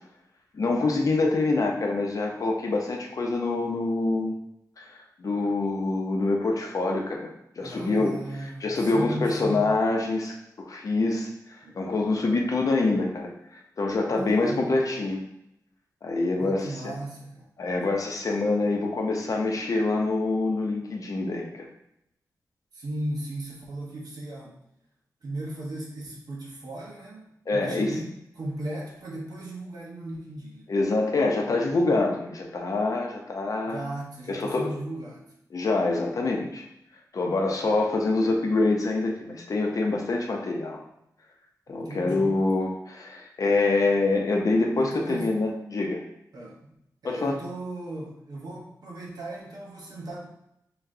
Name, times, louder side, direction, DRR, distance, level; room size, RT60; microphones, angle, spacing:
voice 1, 0.5-4.3 4.8-8.1 8.6-11.3 11.8-15.2 16.0-16.9 17.6-21.7 27.5-27.9 30.7-33.8 34.3-34.7 35.5-36.6 37.1-40.8 41.7-46.0 47.0-47.4, left 3 dB, 55° left, 1 dB, 0.7 m, -25 dB
voice 2, 7.6-9.7 11.6-11.9 14.1-14.7 16.4-17.5 22.7-24.6 25.2-28.1 28.4-30.7 33.7-35.3 41.7-42.3 44.8-45.3 46.3-46.6 47.0-50.3, right 1 dB, 70° right, -3 dB, 1.2 m, -36 dB
5.8 x 2.3 x 2.7 m, 0.81 s
wide cardioid pair, 90°, 7 cm